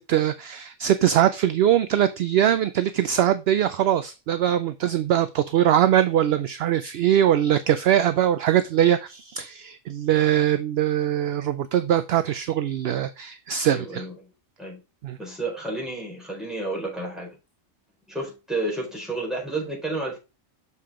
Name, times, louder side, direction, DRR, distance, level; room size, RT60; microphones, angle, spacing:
voice 1, 0.0-14.1 15.0-15.2, right 11 dB, 65° right, 0.7 m, -22 dB
voice 2, 13.7-14.2 14.6-14.8 15.2-17.3 18.1-20.2, right 2 dB, ahead, 4.4 m, -31 dB
6.8 x 5.6 x 3.7 m
omnidirectional pair, 1.3 m